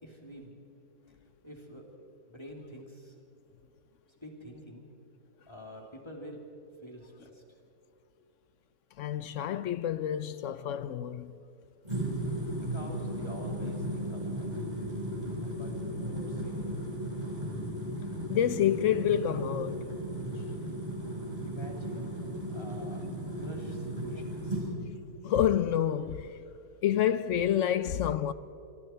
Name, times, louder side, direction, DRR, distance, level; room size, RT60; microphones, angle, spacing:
voice 1, 0.0-0.5 1.4-1.8 2.3-3.1 4.2-4.9 5.5-6.4 6.8-7.4 12.5-14.7 15.4-17.1 21.4-22.1 22.5-23.0 23.4-24.7, equal, 20° left, 3.0 m, -47 dB
voice 2, 9.0-11.3 18.3-19.9 25.2-26.4 26.8-28.3, left 10 dB, 65° left, 0.9 m, -28 dB
sound 1, 11.8-24.7, right 1 dB, 30° right, 5.4 m, -35 dB
26.0 x 24.0 x 4.5 m
omnidirectional pair, 1.5 m